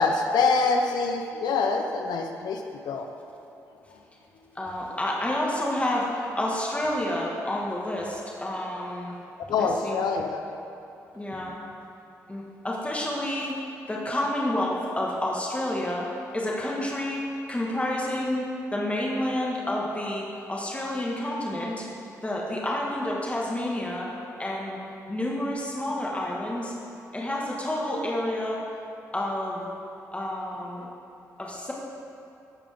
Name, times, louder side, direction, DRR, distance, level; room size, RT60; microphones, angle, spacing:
voice 1, 0.0-3.1 9.5-10.4 30.8-30.9, left 4 dB, 80° left, 4 dB, 0.6 m, -25 dB
voice 2, 4.6-9.1 9.6-10.0 11.1-11.5 12.3-13.6 13.9-16.0 16.3-17.2 17.5-21.9 22.2-24.1 24.4-24.8 25.1-26.7 27.1-28.6 29.1-29.7 30.1-30.9 31.4-31.7, left 1 dB, 20° left, -3 dB, 2.2 m, -29 dB
14.5 x 5.0 x 3.8 m, 2.9 s
supercardioid pair, 55°, 7 cm